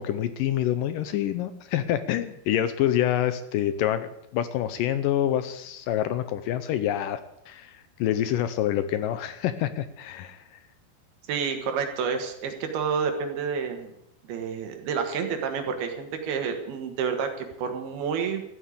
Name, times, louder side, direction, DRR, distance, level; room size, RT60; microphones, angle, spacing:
voice 1, 0.0-7.2 7.5-10.6, left 11 dB, 75° left, 11 dB, 2.1 m, -27 dB
voice 2, 11.3-13.9 14.3-18.4, right 6 dB, 80° right, 5 dB, 3.6 m, -29 dB
14.0 x 9.0 x 8.6 m, 0.80 s
omnidirectional pair, 4.3 m